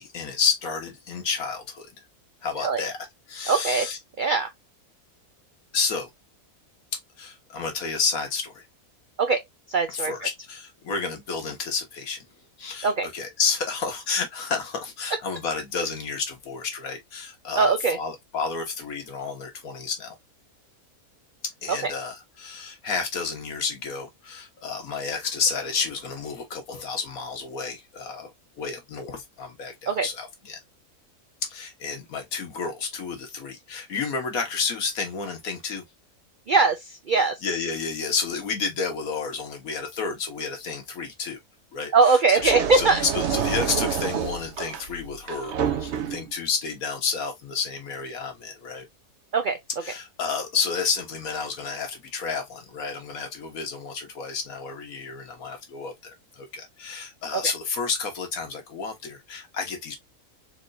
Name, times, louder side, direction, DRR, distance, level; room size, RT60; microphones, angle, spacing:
voice 1, 0.0-1.9 2.4-3.0 3.3-4.0 5.7-6.1 7.2-8.6 10.0-12.2 12.6-20.2 21.6-30.6 31.5-35.8 37.1-41.4 41.7-48.9 49.8-60.0, left 5 dB, 75° left, 1.6 m, -30 dB
voice 2, 3.5-3.9 4.2-4.5 9.2-9.4 9.7-10.1 12.8-13.1 17.6-18.0 21.7-21.9 29.9-30.1 36.5-37.4 41.9-43.0 49.3-49.6 57.3-57.4, right 4 dB, 90° right, 0.4 m, -21 dB
sound 1, 42.3-46.3, right 7 dB, 60° right, 0.9 m, -28 dB
4.3 x 2.9 x 2.6 m
omnidirectional pair, 1.5 m